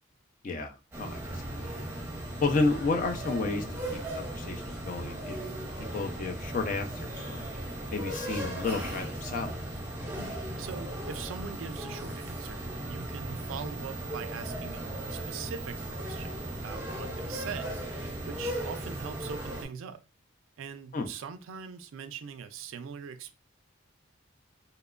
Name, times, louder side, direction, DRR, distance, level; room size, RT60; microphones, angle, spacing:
voice 1, 0.4-1.7 2.4-3.7 3.9-5.4 5.9-7.4 7.9-9.6 20.9-21.1, left 3 dB, 40° left, 0.4 m, -31 dB
sound 1, 0.9-19.6, right 1 dB, 10° right, 0.7 m, -37 dB
voice 2, 10.6-20.0 20.6-23.4, right 7 dB, 75° right, 0.3 m, -42 dB
2.9 x 2.1 x 2.3 m
head